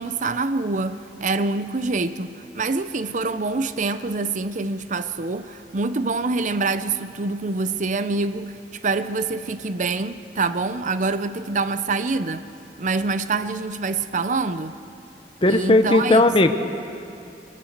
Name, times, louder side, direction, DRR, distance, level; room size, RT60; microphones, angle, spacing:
voice 1, 0.0-8.6 8.8-12.4 12.8-14.8 15.5-16.2, right 3 dB, 45° right, 0.6 m, -25 dB
voice 2, 15.4-16.5, left 2 dB, 30° left, 1.1 m, -16 dB
26.0 x 19.0 x 6.6 m
head